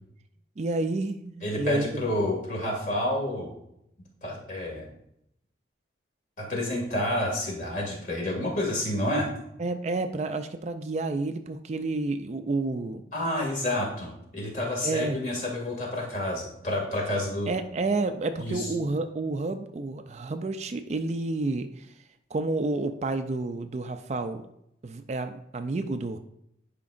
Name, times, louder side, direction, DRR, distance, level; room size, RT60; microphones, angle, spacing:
voice 1, 0.6-2.1 9.6-13.0 14.8-15.2 17.5-21.9 22.3-24.4 24.8-26.2, right 3 dB, 35° right, 9 dB, 0.3 m, -30 dB
voice 2, 1.4-3.5 4.2-4.9 6.4-9.3 13.1-17.5 18.4-18.7, left 1 dB, 45° left, -1 dB, 2.2 m, -29 dB
10.5 x 5.1 x 2.5 m, 0.77 s
head